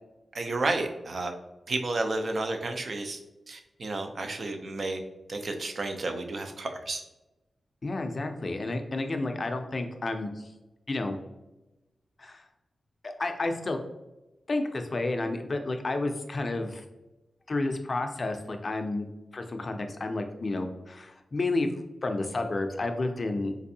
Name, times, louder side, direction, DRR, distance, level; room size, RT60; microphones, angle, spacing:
voice 1, 0.3-1.3 1.7-3.2 3.5-5.0 5.3-7.0, right 2 dB, 55° right, 5 dB, 0.4 m, -31 dB
voice 2, 7.8-10.5 10.9-11.2 12.2-12.4 13.0-13.8 14.5-16.8 17.5-19.1 19.3-21.7 22.0-23.6, left 2 dB, 40° left, 5 dB, 0.4 m, -31 dB
4.1 x 2.6 x 2.6 m, 1.0 s
wide cardioid pair, 140°, 0 cm